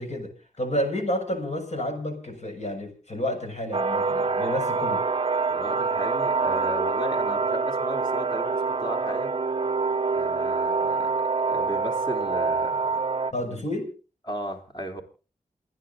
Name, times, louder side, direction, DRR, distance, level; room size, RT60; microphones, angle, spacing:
voice 1, 0.0-5.0 13.3-13.9, left 1 dB, 55° left, 4 dB, 6.7 m, -30 dB
sound 1, 3.7-13.3, right 4 dB, 40° right, 0.7 m, -26 dB
voice 2, 5.5-9.3 10.1-11.1 11.5-13.7 14.2-15.0, equal, 30° left, 3 dB, 4.1 m, -36 dB
28.5 x 10.0 x 3.9 m, 0.35 s
cardioid pair, 45°, 14 cm